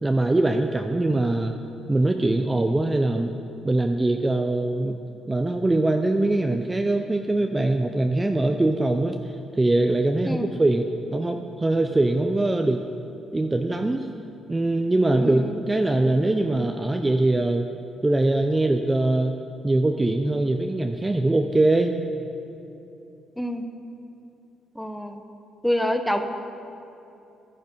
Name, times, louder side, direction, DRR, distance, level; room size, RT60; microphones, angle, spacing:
voice 1, 0.0-1.5 1.9-3.3 3.6-5.0 5.3-12.8 13.3-14.1 14.5-17.7 18.0-19.4 19.6-21.9, right 2 dB, 15° right, 5 dB, 0.5 m, -22 dB
voice 2, 15.2-15.6 23.4-23.6 24.7-25.2 25.6-26.2, equal, 5° left, 7 dB, 0.9 m, -26 dB
11.0 x 10.0 x 5.4 m, 2.8 s
cardioid pair, 90°, 0 cm